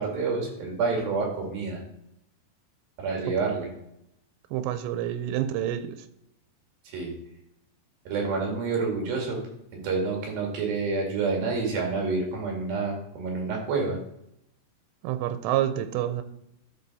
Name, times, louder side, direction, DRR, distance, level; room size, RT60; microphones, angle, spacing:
voice 1, 0.0-1.8 3.0-3.7 6.9-7.1 8.0-9.4 9.7-14.0, right 4 dB, 60° right, 0 dB, 3.5 m, -28 dB
voice 2, 4.5-6.0 15.0-16.2, right 11 dB, 90° right, 10 dB, 2.8 m, -28 dB
12.5 x 4.8 x 4.1 m, 0.79 s
omnidirectional pair, 4.9 m